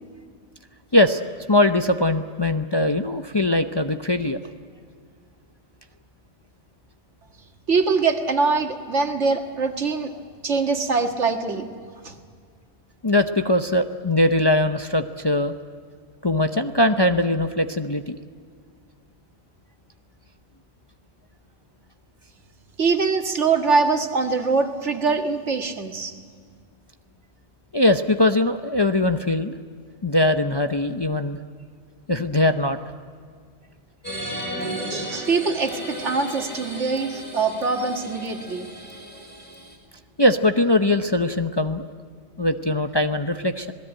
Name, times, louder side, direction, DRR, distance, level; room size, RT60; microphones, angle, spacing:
voice 1, 1.5-4.4 13.0-15.5 16.2-18.2 27.7-29.5 30.0-31.4 32.1-32.8 40.2-41.9 42.4-43.7, left 1 dB, 25° left, 7 dB, 0.7 m, -21 dB
voice 2, 7.7-11.7 12.0-12.2 22.8-26.1 34.9-38.7, right 4 dB, 70° right, 5 dB, 2.1 m, -23 dB
sound 1, 34.0-39.7, equal, 10° left, 5.2 m, -34 dB
26.5 x 19.0 x 8.9 m, 2.1 s
omnidirectional pair, 1.2 m